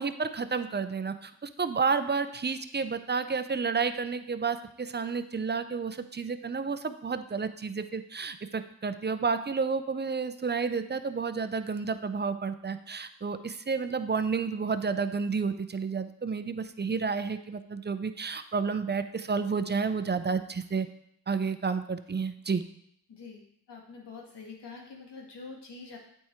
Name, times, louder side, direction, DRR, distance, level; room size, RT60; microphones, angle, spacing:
voice 1, 0.0-20.9 21.3-22.6, right 5 dB, 25° right, 10 dB, 0.5 m, -31 dB
voice 2, 23.1-23.4 23.7-26.0, left 4 dB, 80° left, -1 dB, 1.6 m, -45 dB
8.5 x 3.6 x 4.4 m, 0.72 s
cardioid pair, 45°, 40 cm